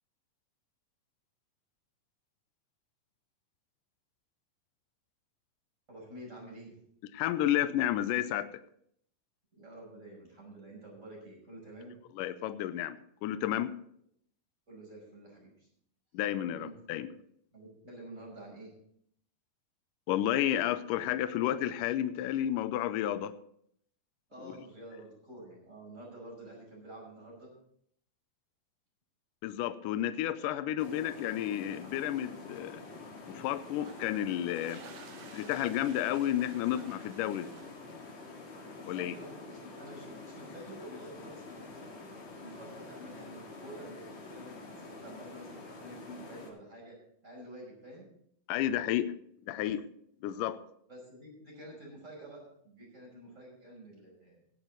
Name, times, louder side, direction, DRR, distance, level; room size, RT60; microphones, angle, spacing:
voice 1, 5.9-6.8 9.5-12.0 14.7-15.7 16.5-17.0 17.5-18.8 24.3-27.5 38.8-41.9 42.3-47.0 47.2-48.1 49.5-49.6 50.9-54.4, right 1 dB, 20° right, -2 dB, 5.7 m, -49 dB
voice 2, 7.1-8.6 12.2-13.7 16.1-17.1 20.1-23.4 24.4-24.5 29.4-32.8 33.3-34.8 35.2-37.5 38.9-39.1 48.5-49.1 49.5-49.8 50.2-50.6, left 12 dB, 80° left, 11 dB, 2.1 m, -31 dB
sound 1, 30.8-46.5, left 3 dB, 50° left, 3.4 m, -47 dB
sound 2, 33.8-38.3, right 7 dB, 65° right, 2.4 m, -55 dB
18.0 x 8.0 x 4.0 m, 0.68 s
omnidirectional pair, 4.0 m